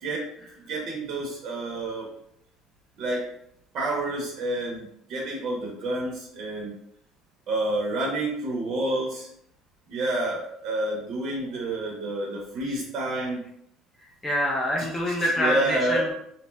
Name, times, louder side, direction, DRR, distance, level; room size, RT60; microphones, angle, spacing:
voice 1, 0.7-2.1 3.0-3.3 3.7-6.7 7.5-9.3 9.9-13.4 15.4-16.1, right 2 dB, 50° right, -2 dB, 0.5 m, -29 dB
voice 2, 14.0-16.1, left 1 dB, 10° left, -3 dB, 0.4 m, -26 dB
2.6 x 2.1 x 3.1 m, 0.73 s
cardioid pair, 150°, 0 cm